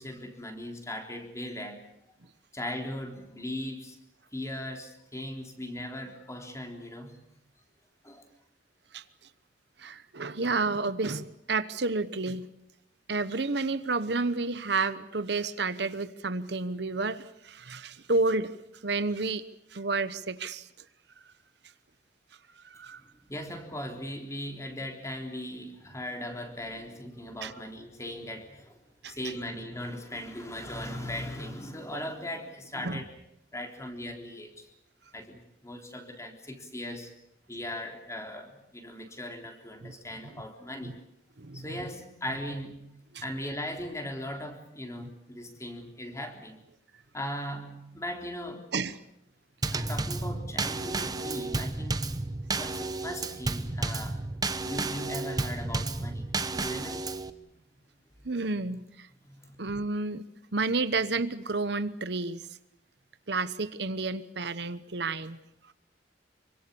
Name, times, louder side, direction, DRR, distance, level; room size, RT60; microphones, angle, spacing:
voice 1, 0.0-1.8 2.5-4.0 4.3-7.2 8.0-8.3 23.0-28.8 29.0-33.1 33.5-34.7 35.1-37.1 37.5-41.0 41.5-42.9 43.2-46.6 47.1-48.7 49.7-52.0 52.5-54.2 54.5-57.1 59.2-59.6, left 1 dB, 15° left, 4 dB, 3.6 m, -38 dB
voice 2, 9.8-12.5 13.1-18.5 18.8-19.4 19.7-20.7 22.6-23.0 27.4-27.5 29.0-29.1 31.9-32.0 32.8-33.0 39.8-39.9 41.4-41.6 43.1-43.2 48.7-49.0 58.2-59.1 59.6-60.2 60.5-62.5 63.3-65.4, right 3 dB, 60° right, 13 dB, 1.0 m, -30 dB
Drum kit / Snare drum / Bass drum, 49.6-57.3, right 3 dB, 20° right, 1.0 m, -32 dB
26.5 x 24.5 x 7.0 m, 0.79 s
head